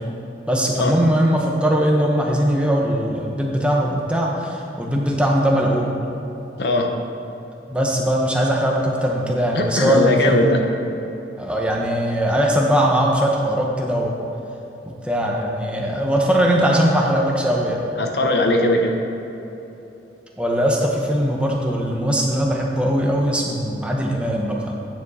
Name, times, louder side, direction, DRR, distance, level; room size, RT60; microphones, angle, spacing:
voice 1, 0.5-6.0 7.7-10.5 11.4-14.2 15.0-17.8 20.4-24.7, equal, 5° right, -1 dB, 0.9 m, -20 dB
voice 2, 6.6-6.9 9.5-10.6 18.0-18.9, left 1 dB, 70° left, 3 dB, 0.8 m, -19 dB
9.5 x 7.1 x 4.1 m, 3.0 s
head